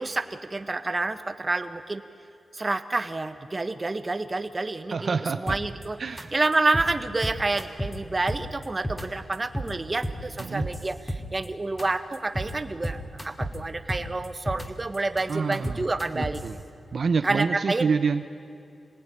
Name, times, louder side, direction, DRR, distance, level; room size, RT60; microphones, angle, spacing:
voice 1, 0.0-2.0 2.5-5.1 5.4-6.0 6.3-16.4 17.2-17.9, right 2 dB, 30° right, 9 dB, 1.2 m, -28 dB
voice 2, 4.9-5.6 6.0-6.3 10.4-10.7 15.3-15.9 16.1-16.6 16.9-18.2, right 5 dB, 65° right, 8 dB, 0.8 m, -27 dB
sound 1, 5.5-5.8 6.2-6.3 6.5-6.9 7.2-8.0 8.3-9.0 9.3-9.7 10.0-11.5 11.8-11.9 12.1-12.5 12.8-13.6 13.9-14.7 14.9-16.5, equal, 10° left, 2.5 m, -32 dB
26.0 x 18.5 x 10.0 m, 2.7 s
wide cardioid pair, 100°, 0 cm